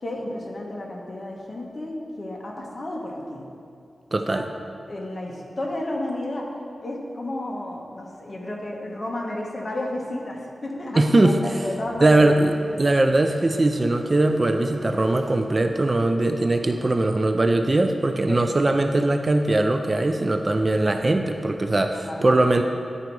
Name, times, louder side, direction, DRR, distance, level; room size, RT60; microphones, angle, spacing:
voice 1, 0.0-3.5 4.1-4.4 4.9-6.5 6.8-12.3 18.3-18.5 21.9-22.4, left 1 dB, 40° left, -1 dB, 1.1 m, -32 dB
voice 2, 4.1-4.5 11.0-11.4 12.0-22.6, right 2 dB, 30° right, 6 dB, 0.3 m, -20 dB
sound 1, 11.8-21.3, equal, 10° right, 1.1 m, -45 dB
10.5 x 4.0 x 4.6 m, 2.4 s
wide cardioid pair, 115°, 0 cm